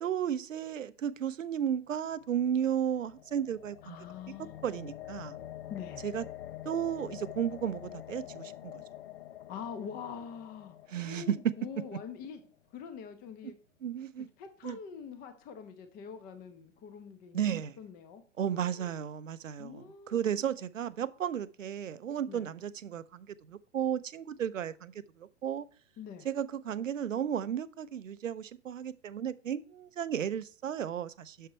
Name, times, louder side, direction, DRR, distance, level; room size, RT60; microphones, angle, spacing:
voice 1, 0.0-4.0 4.6-5.4 6.0-6.2 6.6-8.8 10.9-11.4 13.8-14.3 14.6-14.8 17.3-17.8 18.4-25.7 26.2-31.5, right 9 dB, 75° right, 0.6 m, -34 dB
sound 1, 2.2-12.4, left 12 dB, 50° left, 0.6 m, -47 dB
voice 2, 3.8-4.5 5.7-6.1 9.5-12.4 12.7-13.6 14.2-17.5 17.8-19.0 19.6-20.5 22.3-22.4 26.0-26.3, left 7 dB, 25° left, 1.0 m, -45 dB
6.8 x 6.6 x 4.3 m
figure-of-eight pair, 110°, 39 cm